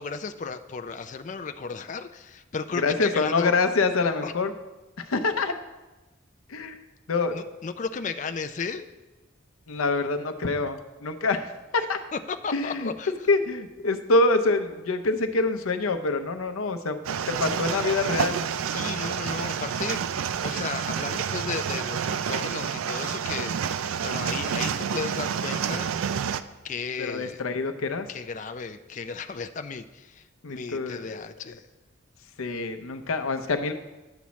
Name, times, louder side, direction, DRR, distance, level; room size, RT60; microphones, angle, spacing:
voice 1, 0.0-3.5 4.2-4.3 7.3-8.9 12.1-13.1 18.7-23.6 24.0-25.9 26.6-27.4 28.1-31.6, left 5 dB, 35° left, 9 dB, 0.4 m, -34 dB
voice 2, 2.8-4.5 5.0-5.5 6.5-6.8 7.1-7.3 9.7-12.0 12.5-12.9 13.3-17.0 17.3-18.4 27.0-28.1 30.4-31.2 32.4-33.7, left 3 dB, 85° left, 8 dB, 0.7 m, -26 dB
sound 1, 17.0-26.4, right 7 dB, 80° right, 0.4 m, -29 dB
11.5 x 7.0 x 3.1 m, 1.1 s
head